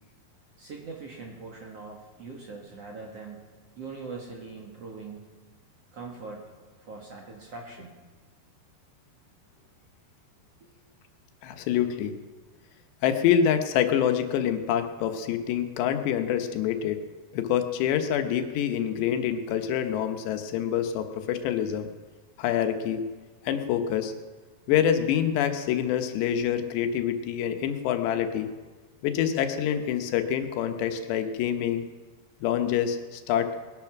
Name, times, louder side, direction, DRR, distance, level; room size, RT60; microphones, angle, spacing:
voice 1, 0.6-5.3 5.9-6.5 6.8-8.0 10.6-10.7, right 4 dB, 50° right, -1 dB, 2.1 m, -42 dB
voice 2, 11.4-12.1 13.0-17.0 17.3-21.9 22.4-23.0 23.4-24.1 24.7-28.5 29.0-31.8 32.4-33.6, left 9 dB, 85° left, 7 dB, 3.2 m, -26 dB
20.5 x 11.0 x 5.9 m, 1.4 s
omnidirectional pair, 4.9 m